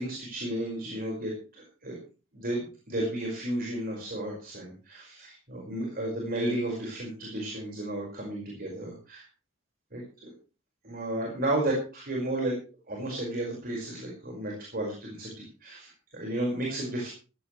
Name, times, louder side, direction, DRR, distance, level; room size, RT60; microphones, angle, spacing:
voice 1, 0.0-1.9 2.3-9.2 9.9-10.3 10.8-12.5 12.9-17.1, right 1 dB, 45° right, -1 dB, 5.5 m, -33 dB
16.5 x 16.0 x 3.3 m, 0.35 s
head